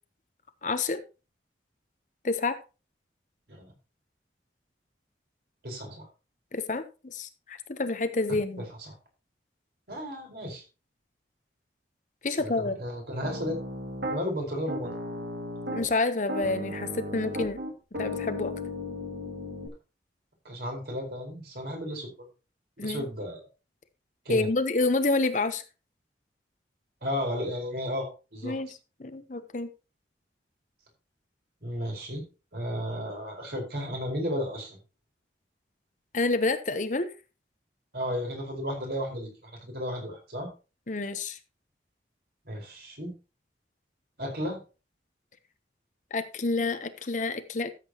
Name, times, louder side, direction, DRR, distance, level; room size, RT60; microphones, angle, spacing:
voice 1, 0.6-1.0 2.2-2.6 6.5-8.6 12.2-12.8 15.7-17.6 17.9-18.5 22.8-23.1 24.3-25.6 28.4-28.7 29.0-29.7 36.1-37.1 40.9-41.4 46.1-47.7, left 3 dB, 45° left, 10 dB, 0.9 m, -28 dB
voice 2, 5.6-6.1 8.6-8.9 9.9-10.6 12.3-13.6 14.1-15.0 20.4-22.1 22.8-23.5 24.2-24.5 27.0-28.6 31.6-34.8 37.9-40.5 42.4-43.1 44.2-44.6, equal, 60° right, 1 dB, 4.7 m, -34 dB
Piano, 13.2-14.2 14.7-15.9 16.3-19.7, left 1 dB, 85° right, 2.2 m, -35 dB
13.5 x 7.8 x 3.0 m, 0.31 s
head